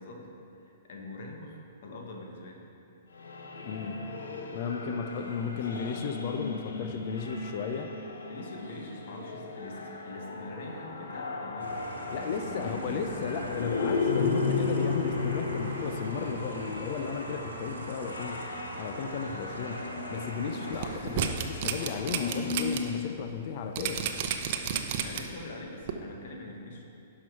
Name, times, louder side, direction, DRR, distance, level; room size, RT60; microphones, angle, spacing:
voice 1, 0.0-2.6 5.4-5.8 8.3-11.7 12.1-12.9 20.5-21.3 25.0-26.8, left 2 dB, 65° left, 1 dB, 1.4 m, -44 dB
sound 1, 3.1-23.0, left 4 dB, 90° left, 0.9 m, -35 dB
voice 2, 3.6-4.0 4.5-7.9 12.1-18.4 18.8-24.1, left 6 dB, 50° left, 6 dB, 0.7 m, -35 dB
sound 2, 11.6-21.0, right 3 dB, 85° right, 1.1 m, -42 dB
sound 3, 20.7-22.8 23.2-23.3 23.8-25.4 25.9-26.0, right 9 dB, 50° right, 0.7 m, -31 dB
10.5 x 5.9 x 4.7 m, 2.6 s
hypercardioid pair, 130°, 0 cm